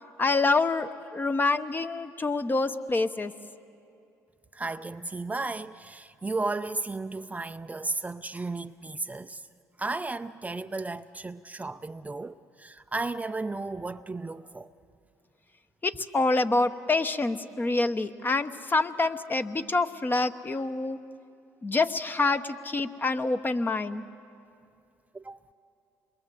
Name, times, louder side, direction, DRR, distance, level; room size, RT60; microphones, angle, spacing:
voice 1, 0.2-3.3 15.8-21.0 21.6-24.0, left 3 dB, 25° left, 1.1 m, -26 dB
voice 2, 4.5-9.4 9.8-14.7 25.1-25.4, right 3 dB, 20° right, 0.6 m, -34 dB
27.5 x 22.0 x 7.8 m
hypercardioid pair, 60°, 8 cm